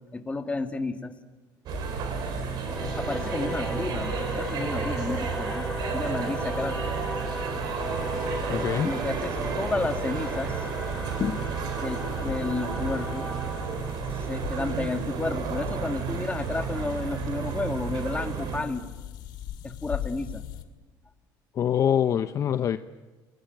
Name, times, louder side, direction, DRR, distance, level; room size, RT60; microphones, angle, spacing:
voice 1, 0.1-1.1 3.0-6.9 8.8-10.6 11.8-13.3 14.3-18.9 19.6-20.4, left 3 dB, 15° left, 6 dB, 2.2 m, -32 dB
sound 1, 1.7-20.6, left 10 dB, 70° left, 2.5 m, -41 dB
sound 2, 1.7-18.6, right 7 dB, 60° right, 4.3 m, -32 dB
Singing / Musical instrument, 2.6-15.5, equal, ahead, 5.4 m, -37 dB
voice 2, 8.5-8.9 11.2-11.5 21.5-22.8, left 9 dB, 40° left, 11 dB, 0.8 m, -25 dB
28.5 x 20.5 x 9.2 m, 1.3 s
cardioid pair, 120°, 8 cm